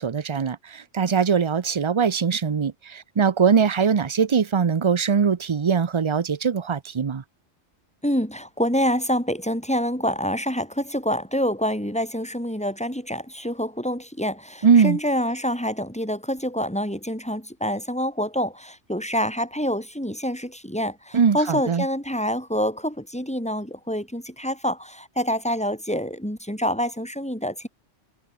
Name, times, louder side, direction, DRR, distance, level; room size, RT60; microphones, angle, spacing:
voice 1, 0.0-7.2 14.6-15.0 21.1-21.8, right 6 dB, 35° right, 0.5 m, -21 dB
voice 2, 8.0-27.7, equal, 5° left, 7.5 m, -26 dB
omnidirectional pair, 1.3 m